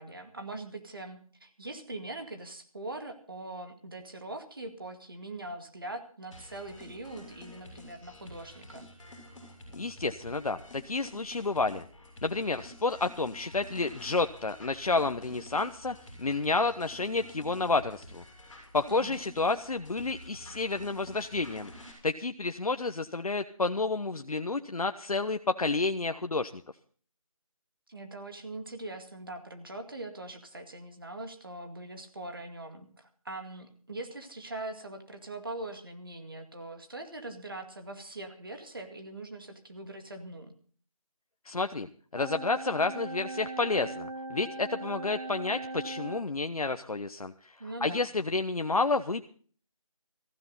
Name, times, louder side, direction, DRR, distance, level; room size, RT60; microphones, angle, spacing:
voice 1, 0.0-8.9 18.9-19.2 27.9-40.5 47.6-48.0, right 2 dB, 40° right, 6 dB, 2.2 m, -42 dB
sound 1, 6.3-21.9, left 1 dB, 5° left, 3.8 m, -49 dB
voice 2, 9.7-11.8 12.2-18.2 18.7-21.7 22.0-26.6 41.5-41.9 42.1-47.6 47.8-49.2, left 3 dB, 90° left, 8 dB, 1.0 m, -30 dB
sound 2, 42.2-46.3, right 2 dB, 90° right, 3.8 m, -39 dB
17.5 x 15.0 x 4.0 m, 0.43 s
figure-of-eight pair, 180°, 18 cm